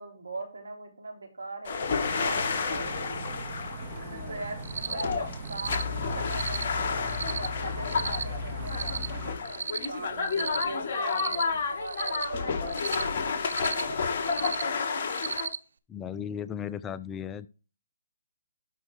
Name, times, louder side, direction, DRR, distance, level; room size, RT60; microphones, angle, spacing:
voice 1, 0.0-3.2 3.9-5.2 5.5-7.0 7.4-14.1, right 3 dB, 80° right, 3.2 m, -41 dB
sound 1, 1.7-15.5, left 5 dB, 45° left, 2.3 m, -31 dB
sound 2, 2.0-9.3, left 1 dB, 20° right, 2.5 m, -37 dB
Cricket, 4.6-5.0 5.4-5.8 6.3-6.6 7.1-7.5 7.8-8.2 8.7-9.1 9.4-9.9 10.3-10.6 11.1-11.4 11.9-12.2 12.7-13.0 13.4-13.8 14.2-14.6 15.1-15.6, right 6 dB, 65° right, 0.8 m, -34 dB
voice 2, 15.9-17.5, left 8 dB, 15° left, 0.4 m, -35 dB
12.0 x 4.6 x 4.7 m
figure-of-eight pair, 140°, 0 cm